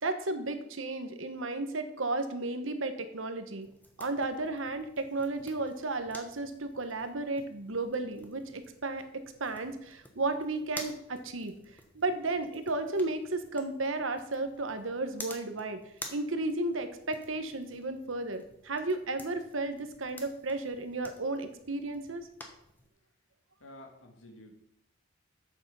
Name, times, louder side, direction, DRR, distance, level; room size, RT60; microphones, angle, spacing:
voice 1, 0.0-3.7 4.0-9.0 9.4-11.5 11.9-15.8 16.1-22.3, right 2 dB, 80° right, 9 dB, 1.1 m, -33 dB
sound 1, 3.6-22.9, left 1 dB, 10° left, 1.2 m, -51 dB
voice 2, 23.6-24.5, left 1 dB, 80° left, 3 dB, 2.0 m, -50 dB
8.4 x 6.9 x 5.6 m, 0.77 s
head